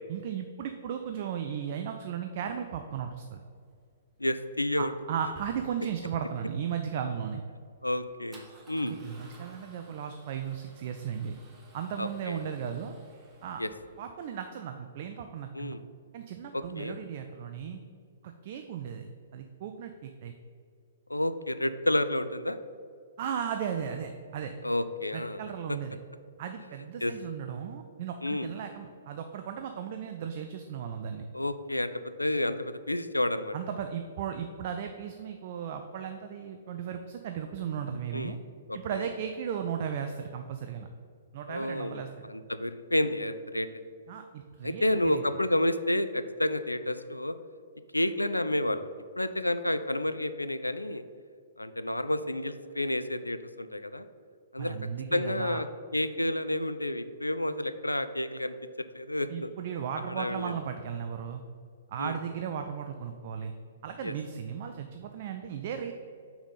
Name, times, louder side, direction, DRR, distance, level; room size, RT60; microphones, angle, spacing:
voice 1, 0.1-3.4 4.8-7.4 8.8-11.3 11.7-12.9 13.4-13.6 14.0-15.8 16.1-17.8 18.2-20.3 23.2-24.5 25.1-26.0 26.4-31.2 33.5-38.4 38.7-40.9 41.3-42.1 44.1-45.2 54.6-55.6 59.3-61.4 61.9-63.5 63.8-65.9, right 8 dB, 45° right, 6 dB, 0.4 m, -36 dB
Male speech man speaking / Car / Engine starting, 3.1-14.1, right 1 dB, 20° right, 1.2 m, -57 dB
voice 2, 4.2-4.9 7.8-9.0 12.0-12.5 13.6-13.7 15.5-15.8 16.5-17.0 21.1-22.6 24.6-25.4 27.0-27.1 28.2-28.5 31.3-33.5 38.1-38.4 38.7-39.1 41.5-43.7 44.6-47.3 47.9-48.8 49.2-51.0 51.6-54.1 54.5-54.8 55.1-55.7 55.9-58.5 58.9-59.5 60.1-60.5 62.0-62.2 64.0-64.1, left 1 dB, 90° left, 12 dB, 0.3 m, -30 dB
5.7 x 4.2 x 5.5 m, 2.2 s
figure-of-eight pair, 115°, 0 cm